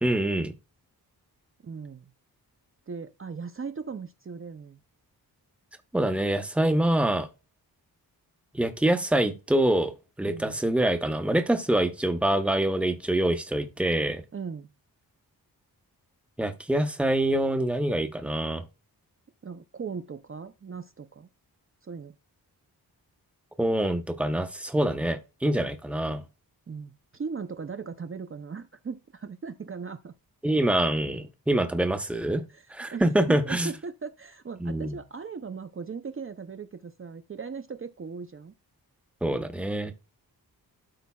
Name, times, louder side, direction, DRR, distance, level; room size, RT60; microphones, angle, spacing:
voice 1, 0.0-0.5 5.9-7.3 8.5-9.9 10.2-14.2 16.4-18.6 23.6-26.2 30.4-32.4 32.7-33.7 34.6-35.0 39.2-39.9, right 1 dB, 5° right, 0.8 m, -25 dB
voice 2, 1.6-2.1 2.9-4.8 10.2-10.6 14.3-14.7 19.4-21.3 21.8-22.1 26.7-30.1 32.5-38.5, right 5 dB, 35° right, 0.6 m, -38 dB
12.5 x 5.2 x 2.3 m
wide cardioid pair, 105°, 38 cm